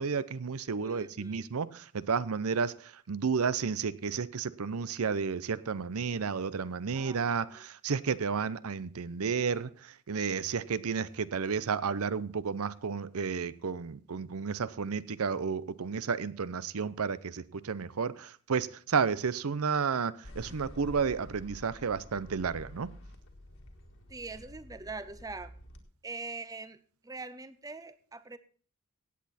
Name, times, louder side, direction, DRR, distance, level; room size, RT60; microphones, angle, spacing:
voice 1, 0.0-22.9, right 5 dB, 75° right, 17 dB, 0.6 m, -32 dB
voice 2, 0.8-1.5 6.9-7.7 11.4-11.5 24.1-25.5 26.0-28.4, right 3 dB, 15° right, 14 dB, 0.7 m, -43 dB
sound 1, 20.2-25.8, left 1 dB, 60° left, 1.8 m, -49 dB
16.5 x 8.4 x 4.2 m, 0.43 s
head